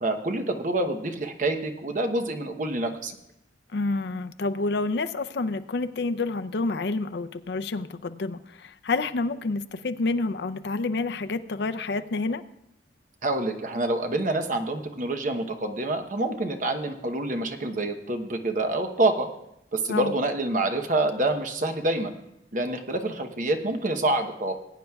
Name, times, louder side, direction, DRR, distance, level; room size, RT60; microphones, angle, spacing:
voice 1, 0.0-3.1 13.2-19.3 19.7-22.1 22.5-24.5, right 2 dB, 45° right, 6 dB, 0.9 m, -27 dB
voice 2, 3.7-12.4 19.9-20.1, left 3 dB, 65° left, 9 dB, 0.5 m, -28 dB
20.5 x 9.1 x 2.3 m, 0.81 s
head